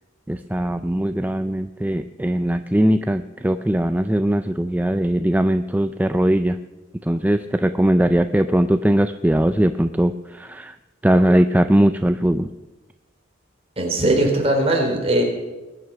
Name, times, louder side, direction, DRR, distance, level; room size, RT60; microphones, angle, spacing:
voice 1, 0.3-6.6 7.0-10.8 11.0-12.5, right 1 dB, 10° right, 9 dB, 0.4 m, -20 dB
voice 2, 13.8-15.2, right 1 dB, 30° right, 0 dB, 4.0 m, -19 dB
20.5 x 9.6 x 5.9 m, 1.1 s
head